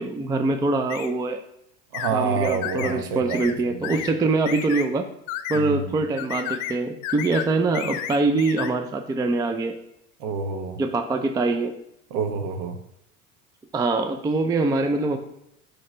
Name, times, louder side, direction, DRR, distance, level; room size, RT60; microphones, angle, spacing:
voice 1, 0.0-1.4 2.1-5.1 5.5-9.7 10.8-11.7 13.7-15.2, right 3 dB, 10° right, 6 dB, 0.4 m, -24 dB
sound 1, 0.9-1.1 1.9-2.1 2.4-2.9 3.3-3.5 3.8-4.1 4.4-4.9 5.3-5.6 6.2-6.8 7.0-7.5 7.7-8.7, left 11 dB, 60° left, 0.7 m, -32 dB
voice 2, 1.9-4.0 5.5-6.0 10.2-10.8 12.1-12.8, right 5 dB, 60° right, 6 dB, 1.1 m, -28 dB
6.3 x 3.2 x 5.0 m, 0.77 s
hypercardioid pair, 85°, 43 cm